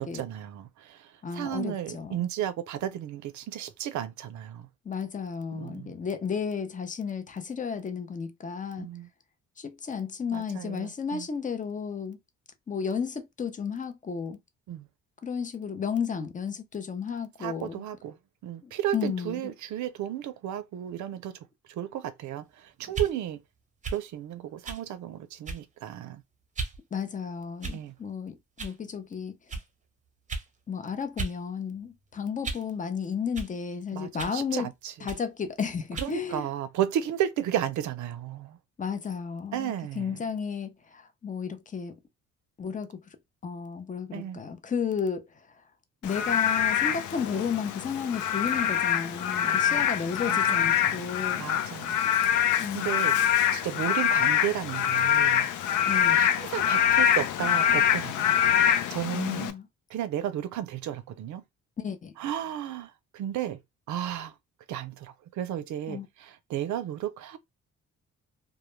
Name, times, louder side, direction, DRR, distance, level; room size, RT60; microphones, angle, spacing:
voice 1, 0.0-4.7 5.5-6.0 8.8-9.1 10.3-11.3 14.7-14.9 17.4-18.2 18.4-21.4 21.7-23.4 23.9-26.2 27.7-27.9 33.9-34.9 36.0-38.6 39.5-40.2 44.1-44.4 49.4-49.9 50.2-51.0 51.3-52.0 52.5-53.2 53.5-55.5 56.1-58.3 58.6-59.5 59.9-61.4 62.2-63.6 63.9-64.3 64.7-67.4, right 11 dB, 70° right, 0.5 m, -34 dB
voice 2, 1.2-2.2 4.9-8.9 9.6-12.2 12.7-14.4 15.2-17.8 18.6-19.5 26.9-29.4 30.7-34.7 35.0-36.5 38.8-42.0 42.6-43.0 43.4-45.3 46.0-51.4 52.6-52.9 55.9-56.3 59.1-59.7 61.8-62.1 65.9-66.1, left 6 dB, 25° left, 0.5 m, -33 dB
sound 1, 22.9-23.1 23.8-24.0 24.6-24.8 25.4-25.8 26.5-26.8 27.6-28.0 28.6-28.8 29.5-29.7 30.3-30.5 31.2-31.4 31.7-32.7 33.3-33.5 34.2-34.4 35.1-35.3 35.9-36.2, right 4 dB, 25° right, 0.7 m, -35 dB
Frog / Rain, 46.0-59.5, left 9 dB, 80° left, 0.5 m, -25 dB
2.2 x 2.1 x 3.0 m
cardioid pair, 90°, 30 cm